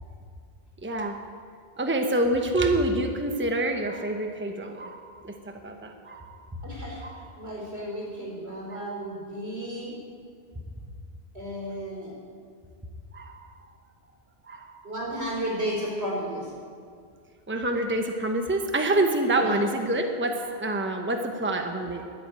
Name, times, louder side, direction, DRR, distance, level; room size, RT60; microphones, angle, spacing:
voice 1, 0.8-1.2 1.8-6.4 7.0-7.2 8.7-8.9 13.1-13.4 14.4-14.8 17.5-22.1, right 1 dB, 10° right, 4 dB, 1.0 m, -27 dB
voice 2, 6.6-7.0 7.4-9.9 11.3-12.1 14.8-16.5 19.3-19.6, equal, 80° right, -3 dB, 4.6 m, -33 dB
11.5 x 11.5 x 9.0 m, 2.1 s
omnidirectional pair, 1.1 m